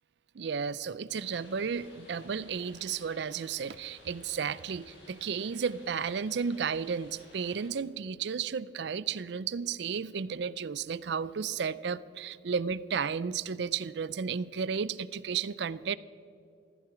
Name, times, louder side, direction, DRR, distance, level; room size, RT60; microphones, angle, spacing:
voice 1, 0.3-16.0, right 6 dB, 60° right, 18 dB, 0.4 m, -33 dB
sound 1, 1.1-7.7, left 1 dB, 80° left, 3.7 m, -56 dB
15.0 x 14.0 x 5.0 m, 2.5 s
head